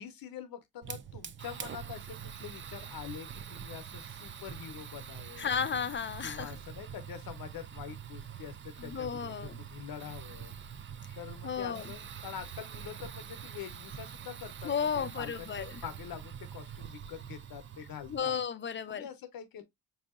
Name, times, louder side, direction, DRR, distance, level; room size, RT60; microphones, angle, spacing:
voice 1, 0.0-5.6 6.2-10.5 11.1-18.4 18.9-19.6, left 9 dB, 65° left, 0.7 m, -45 dB
Fire, 0.8-18.4, right 8 dB, 35° right, 0.4 m, -45 dB
voice 2, 5.4-6.5 8.8-9.6 11.4-11.8 14.6-15.6 18.1-19.0, left 7 dB, 30° left, 0.4 m, -33 dB
5.5 x 2.7 x 2.3 m
cardioid pair, 95°, 37 cm